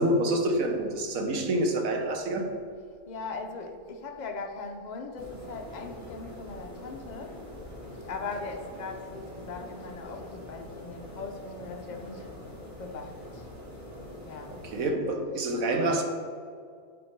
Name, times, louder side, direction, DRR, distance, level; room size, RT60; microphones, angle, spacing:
voice 1, 0.0-2.5 14.5-16.0, right 1 dB, 65° right, 4 dB, 1.3 m, -27 dB
voice 2, 3.1-7.4 8.1-12.3 12.8-13.5 14.3-14.5, left 4 dB, 70° left, 3 dB, 0.4 m, -39 dB
sound 1, 5.2-14.9, left 1 dB, 10° right, 1.5 m, -44 dB
8.0 x 4.4 x 4.5 m, 2.2 s
omnidirectional pair, 1.6 m